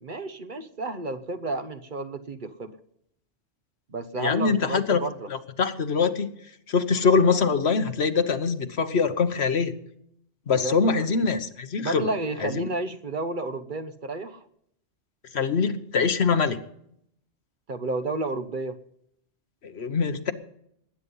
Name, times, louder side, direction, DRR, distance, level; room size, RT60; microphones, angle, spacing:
voice 1, 0.0-2.7 3.9-5.3 10.5-11.1 11.8-14.4 17.7-18.8, right 2 dB, 45° right, 9 dB, 1.1 m, -31 dB
voice 2, 4.1-5.0 5.3-6.3 6.7-9.7 10.5-12.1 12.4-12.7 15.3-16.6 19.6-20.3, left 5 dB, 65° left, 9 dB, 1.3 m, -23 dB
20.0 x 9.7 x 5.5 m, 0.73 s
omnidirectional pair, 1.2 m